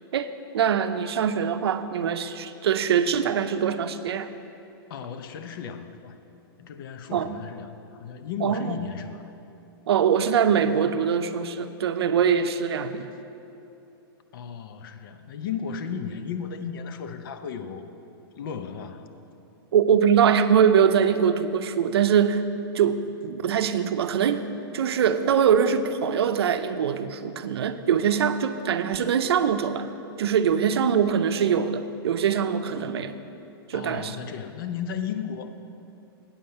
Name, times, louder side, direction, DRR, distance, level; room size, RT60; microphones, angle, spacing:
voice 1, 0.5-4.3 7.1-7.4 8.4-8.7 9.9-13.1 19.7-22.5 22.7-24.5 24.7-29.9 30.2-33.2 33.7-34.2, right 7 dB, 85° right, 10 dB, 0.6 m, -23 dB
voice 2, 4.9-6.2 6.6-9.3 14.3-18.0 18.3-19.1 33.7-35.5, left 7 dB, 60° left, 9 dB, 0.7 m, -35 dB
8.6 x 5.5 x 7.7 m, 2.9 s
hypercardioid pair, 145°, 13 cm